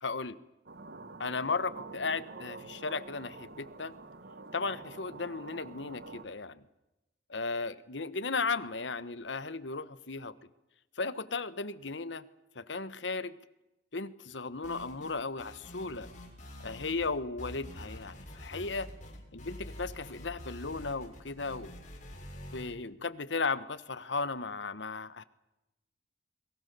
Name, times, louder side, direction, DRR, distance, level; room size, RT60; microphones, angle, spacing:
voice 1, 0.0-0.4 1.2-3.9 4.5-6.6 7.3-10.3 11.0-12.2 12.5-13.3 13.9-16.1 16.6-18.9 19.3-21.7 22.5-25.2, left 4 dB, 80° left, 14 dB, 1.3 m, -35 dB
sound 1, 0.7-6.3, right 3 dB, 60° right, 1.4 m, -47 dB
sound 2, 14.6-15.1 15.4-17.1 17.4-22.6, left 1 dB, 45° left, 7.0 m, -46 dB
29.0 x 22.5 x 6.9 m, 0.93 s
head